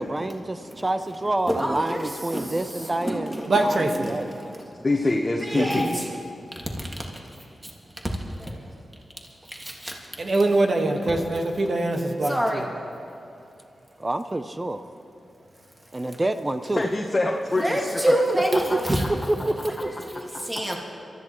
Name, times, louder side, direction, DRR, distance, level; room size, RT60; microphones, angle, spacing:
voice 1, 0.1-3.3 3.6-4.6 14.0-14.8 15.9-16.8 18.5-18.6 19.3-20.1, right 1 dB, 25° right, 9 dB, 0.6 m, -28 dB
voice 2, 1.5-3.7 4.1-4.7 5.4-6.0 6.5-7.1 7.6-7.7 8.0-8.1 8.4-8.7 9.4-10.0 12.2-12.7 17.6-19.1 19.8-20.8, right 1 dB, 10° right, -1 dB, 2.1 m, -27 dB
voice 3, 3.5-4.1 5.5-5.6 10.2-12.6, right 2 dB, 60° right, 3 dB, 1.6 m, -23 dB
voice 4, 4.8-5.9 11.0-11.2 16.7-18.3, left 2 dB, 30° left, -1 dB, 1.1 m, -25 dB
23.0 x 14.0 x 3.1 m, 2.7 s
cardioid pair, 60°, 0 cm